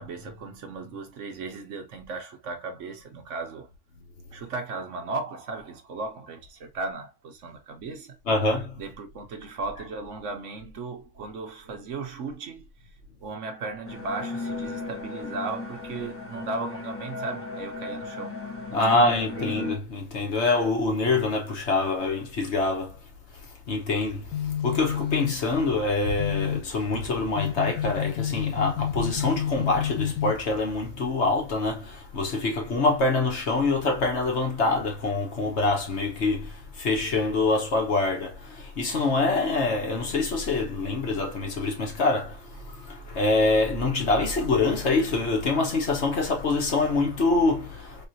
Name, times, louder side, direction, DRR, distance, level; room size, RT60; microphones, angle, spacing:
voice 1, 0.0-3.7 4.3-8.1 8.8-12.7 13.2-19.0 19.3-19.7, right 3 dB, 65° right, 1.1 m, -36 dB
voice 2, 8.3-8.8 18.7-23.0 23.4-48.1, left 3 dB, 55° left, 1.3 m, -25 dB
sound 1, 13.8-19.8, left 3 dB, 15° left, 0.7 m, -36 dB
sound 2, 24.0-30.9, left 9 dB, 85° left, 1.1 m, -30 dB
3.7 x 3.2 x 2.7 m
omnidirectional pair, 1.4 m